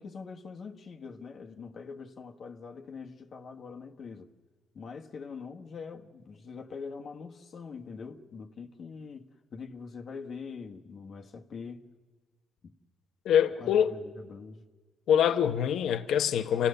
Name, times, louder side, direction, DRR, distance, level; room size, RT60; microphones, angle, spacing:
voice 1, 0.0-4.3 4.7-9.2 9.5-11.9 12.6-12.7 13.6-14.6, left 5 dB, 55° left, 1.4 m, -43 dB
voice 2, 13.2-13.9 15.1-16.7, left 9 dB, 75° left, 0.9 m, -24 dB
28.0 x 16.0 x 6.7 m
cardioid pair, 90°, 0 cm